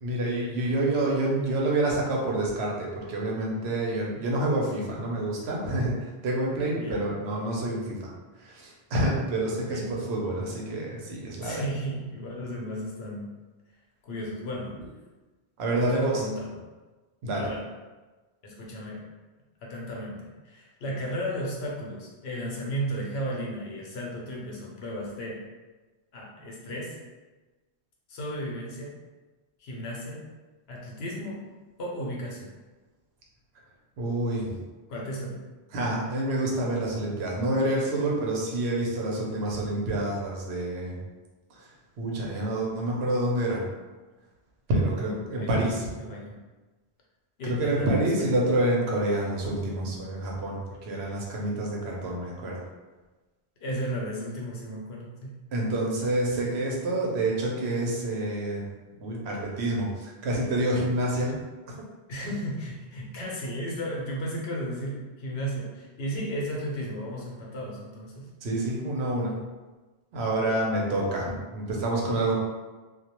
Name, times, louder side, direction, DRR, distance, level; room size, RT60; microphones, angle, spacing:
voice 1, 0.0-8.1 8.4-11.6 15.6-16.2 17.2-17.5 34.0-34.6 35.7-41.0 41.6-41.7 42.0-43.7 44.7-45.9 47.4-52.6 55.5-58.6 59.0-61.3 68.4-69.3 70.1-72.4, right 1 dB, 80° right, -2 dB, 0.9 m, -28 dB
voice 2, 11.4-13.3 14.0-14.7 15.7-16.5 17.3-17.6 18.4-19.0 19.6-25.4 26.1-27.0 28.1-29.0 29.6-30.3 30.7-31.4 31.8-32.5 34.9-35.4 44.8-46.3 47.4-48.2 53.6-55.4 62.1-68.3, equal, 75° left, -3 dB, 0.9 m, -34 dB
2.2 x 2.1 x 2.8 m, 1.2 s
omnidirectional pair, 1.1 m